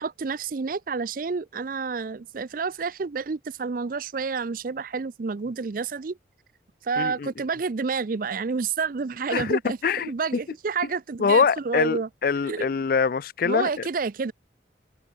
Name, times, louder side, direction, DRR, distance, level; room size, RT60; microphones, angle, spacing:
voice 1, 0.0-6.2 6.8-9.8 10.0-12.1 12.4-12.8 13.4-14.3, right 5 dB, 45° right, 0.5 m, -29 dB
voice 2, 7.0-7.3 9.3-10.1 11.2-13.9, left 5 dB, 50° left, 0.4 m, -24 dB
head